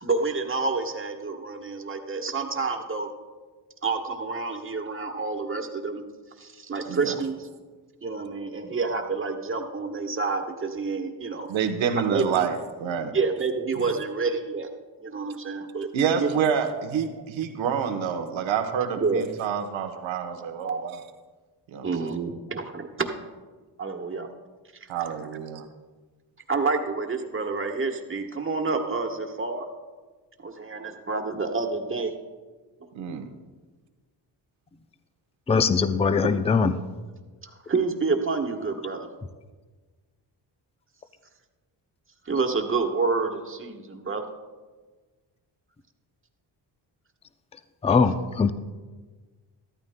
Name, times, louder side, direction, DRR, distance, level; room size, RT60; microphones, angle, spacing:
voice 1, 0.0-3.1 3.8-6.1 6.4-7.5 8.0-11.5 12.1-12.5 13.1-14.7 15.0-15.9 16.2-16.8 17.1-17.2 19.0-19.2 20.6-20.9 21.8-23.1 23.8-24.3 24.8-24.9 26.5-29.7 30.4-32.1 37.4-39.1 42.2-44.3, right 4 dB, 25° right, 5 dB, 1.2 m, -28 dB
voice 2, 11.5-13.1 15.9-21.0 21.7-21.9 24.9-25.6 32.9-33.3, right 7 dB, 90° right, 6 dB, 1.1 m, -27 dB
voice 3, 35.5-36.7 47.8-48.5, left 5 dB, 15° left, 11 dB, 0.4 m, -21 dB
13.5 x 13.0 x 2.2 m, 1.3 s
cardioid pair, 80°, 45 cm